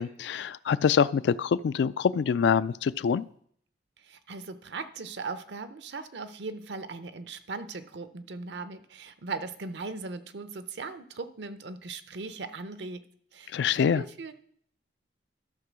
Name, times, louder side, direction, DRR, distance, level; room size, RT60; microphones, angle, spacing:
voice 1, 0.0-3.2 13.5-14.0, left 7 dB, 75° left, 16 dB, 0.3 m, -25 dB
voice 2, 4.0-13.0 13.3-14.3, right 4 dB, 75° right, 11 dB, 0.7 m, -39 dB
12.5 x 4.5 x 6.2 m, 0.64 s
head